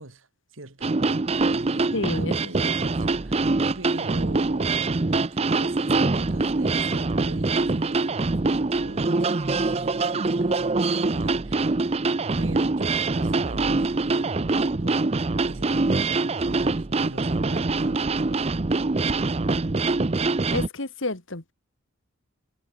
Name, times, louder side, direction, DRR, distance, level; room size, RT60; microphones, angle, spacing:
voice 1, 0.0-5.0 5.3-11.8 12.4-18.3, right 2 dB, 70° right, 2.5 m, -42 dB
sound 1, 0.8-20.7, right 3 dB, 30° right, 0.6 m, -24 dB
voice 2, 1.9-2.4 2.6-2.7 20.5-21.5, left 2 dB, 65° left, 2.1 m, -30 dB
head